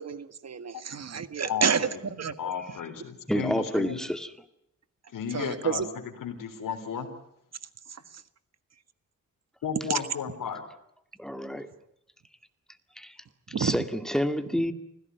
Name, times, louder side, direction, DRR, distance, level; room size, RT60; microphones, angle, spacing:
voice 1, 0.0-2.5 3.7-3.9 5.3-5.9 7.9-8.2 9.9-10.0 13.5-13.8, right 6 dB, 50° right, 12 dB, 1.6 m, -30 dB
voice 2, 1.5-1.9 2.4-4.0 5.1-5.8 6.2-7.1 9.6-10.6, left 7 dB, 80° left, 3 dB, 3.6 m, -33 dB
voice 3, 3.3-4.3 11.2-11.7 13.0-13.2 13.6-14.7, equal, ahead, 8 dB, 2.1 m, -29 dB
25.5 x 16.5 x 9.4 m, 0.78 s
cardioid pair, 90°, 32 cm